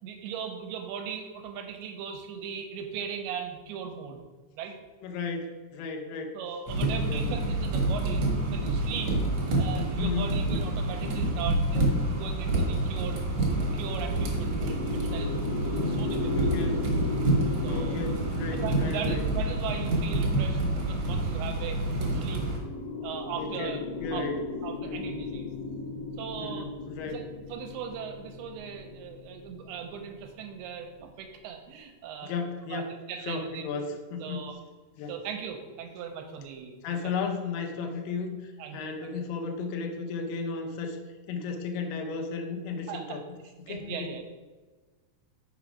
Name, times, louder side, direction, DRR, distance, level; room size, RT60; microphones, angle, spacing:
voice 1, 0.0-4.2 4.6-4.8 6.3-9.2 9.6-13.3 13.7-15.4 15.6-16.5 17.6-18.2 18.5-22.4 23.0-23.8 24.1-24.3 24.6-25.5 26.2-26.7 27.0-27.2 27.5-32.3 32.7-33.8 34.2-34.6 35.1-36.7 37.0-37.1 38.6-39.1 42.9-43.2 43.7-44.4, right 7 dB, 85° right, 4 dB, 2.6 m, -38 dB
voice 2, 5.0-6.3 7.1-7.3 10.0-10.4 16.3-16.9 17.6-19.2 23.4-23.7 24.0-24.4 24.8-25.2 26.4-27.2 32.2-32.9 33.2-34.5 35.0-35.1 36.8-41.0 41.3-43.2 43.7-44.1, left 4 dB, 90° left, 4 dB, 2.8 m, -34 dB
sound 1, 6.7-22.6, right 1 dB, 60° right, 1.8 m, -28 dB
sound 2, 13.3-30.7, left 3 dB, 75° left, 2.1 m, -37 dB
6.3 x 5.1 x 4.8 m, 1.3 s
omnidirectional pair, 4.6 m